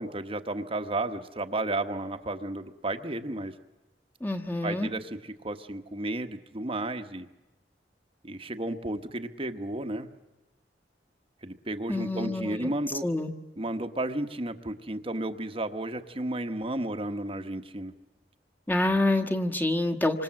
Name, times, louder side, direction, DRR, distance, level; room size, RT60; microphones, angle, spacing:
voice 1, 0.0-3.5 4.6-7.3 8.2-10.1 11.4-13.1 13.6-17.9, right 2 dB, 30° right, 6 dB, 1.2 m, -33 dB
voice 2, 4.2-4.9 11.9-12.7 13.0-13.3 18.7-20.2, left 2 dB, 10° left, 4 dB, 1.4 m, -27 dB
27.5 x 25.5 x 7.7 m, 1.1 s
head